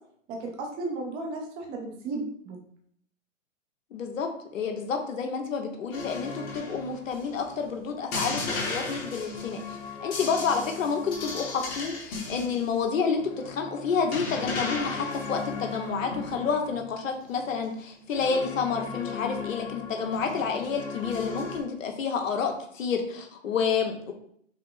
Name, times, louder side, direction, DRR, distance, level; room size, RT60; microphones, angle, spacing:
voice 1, 0.3-2.6, right 2 dB, 15° right, 1 dB, 0.5 m, -34 dB
voice 2, 3.9-9.6 10.0-24.1, left 5 dB, 75° left, 4 dB, 1.1 m, -29 dB
sound 1, 5.9-7.6 8.1-16.9 17.2-17.6 18.1-21.6, left 4 dB, 20° left, 0.9 m, -36 dB
5.7 x 2.0 x 3.8 m, 0.66 s
hypercardioid pair, 145°, 39 cm